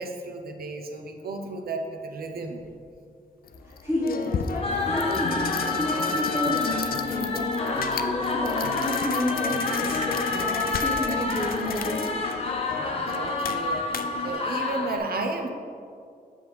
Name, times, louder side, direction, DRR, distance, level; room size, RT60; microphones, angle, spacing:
voice 1, 0.0-2.6 12.7-15.5, right 3 dB, 90° right, 4 dB, 0.7 m, -33 dB
sound 1, 2.6-2.8 3.4-14.3, left 6 dB, 80° left, 0.4 m, -33 dB
voice 2, 3.6-12.1, left 1 dB, 15° right, -8 dB, 1.6 m, -30 dB
sound 2, 4.6-15.0, left 3 dB, 40° left, 0.8 m, -29 dB
7.9 x 6.2 x 3.5 m, 2.4 s
wide cardioid pair, 170°, 15 cm